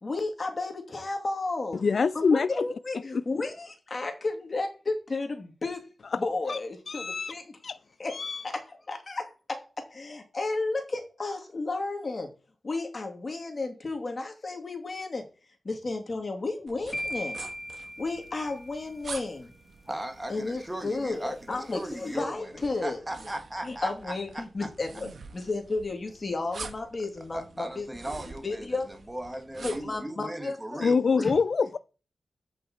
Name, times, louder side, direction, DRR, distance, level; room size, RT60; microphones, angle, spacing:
voice 1, 0.0-1.8 2.1-5.9 6.1-7.4 8.0-8.1 8.4-8.6 8.9-12.3 12.6-15.3 15.6-17.4 18.0-19.5 20.3-23.0 23.6-27.9 28.4-28.9 29.6-30.8 31.2-31.3, left 3 dB, 45° left, 2.5 m, -33 dB
voice 2, 1.7-2.7 3.1-3.2 6.1-6.2 6.5-6.6 6.9-7.4 7.6-7.8 8.1-8.4 30.8-31.8, left 5 dB, 65° left, 0.3 m, -25 dB
sound 1, 16.7-30.0, right 4 dB, 70° right, 1.6 m, -47 dB
sound 2, 16.9-19.0, equal, 30° left, 2.1 m, -38 dB
voice 3, 19.9-22.5 22.8-24.4 27.3-31.3, right 1 dB, 15° right, 1.7 m, -37 dB
8.5 x 5.9 x 4.4 m
cardioid pair, 55°, 0 cm